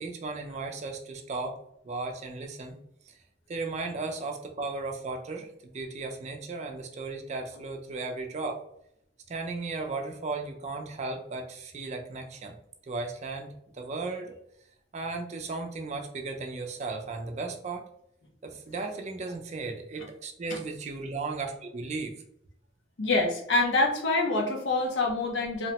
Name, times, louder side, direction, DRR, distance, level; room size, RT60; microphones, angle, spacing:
voice 1, 0.0-1.6 1.8-2.8 3.1-3.2 3.5-8.6 9.3-12.5 12.9-13.5 13.7-14.4 14.9-17.8 18.4-22.2, right 3 dB, 40° right, 4 dB, 0.4 m, -35 dB
voice 2, 23.0-25.7, left 2 dB, 85° left, 1 dB, 0.6 m, -26 dB
2.8 x 2.1 x 2.8 m, 0.73 s
head